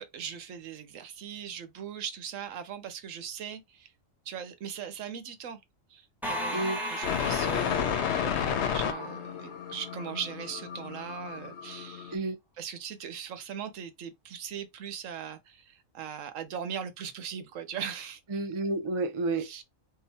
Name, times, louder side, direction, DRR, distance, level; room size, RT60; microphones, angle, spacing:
voice 1, 0.0-3.9 4.3-5.6 5.9-12.2 12.6-18.2 19.3-19.6, right 8 dB, 80° right, 1.1 m, -40 dB
sound 1, 6.2-9.9, equal, ahead, 1.0 m, -36 dB
sound 2, 7.0-12.1, left 9 dB, 65° left, 0.8 m, -32 dB
voice 2, 18.3-19.6, right 3 dB, 40° right, 0.4 m, -30 dB
3.8 x 2.2 x 4.1 m
omnidirectional pair, 1.3 m